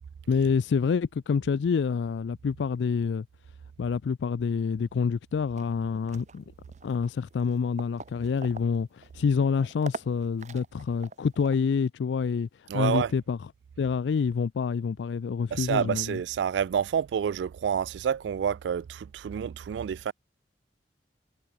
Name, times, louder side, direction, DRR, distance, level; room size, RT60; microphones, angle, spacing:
voice 1, 0.3-3.3 3.8-6.4 6.8-13.4 13.8-16.2, left 5 dB, 85° left, 0.4 m, -27 dB
sound 1, 5.6-11.7, right 3 dB, 45° right, 3.1 m, -45 dB
voice 2, 12.7-13.1 15.5-20.1, right 8 dB, 80° right, 0.3 m, -28 dB
head